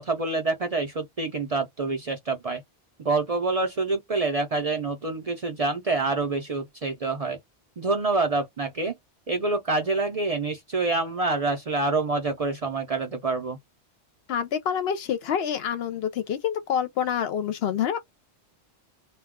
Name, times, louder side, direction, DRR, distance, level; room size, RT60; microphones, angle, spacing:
voice 1, 0.0-2.6 3.0-7.4 7.8-8.9 9.3-13.6, right 3 dB, 45° right, 0.5 m, -27 dB
voice 2, 14.3-18.0, left 8 dB, 70° left, 0.8 m, -27 dB
2.2 x 2.2 x 3.5 m
omnidirectional pair, 1.1 m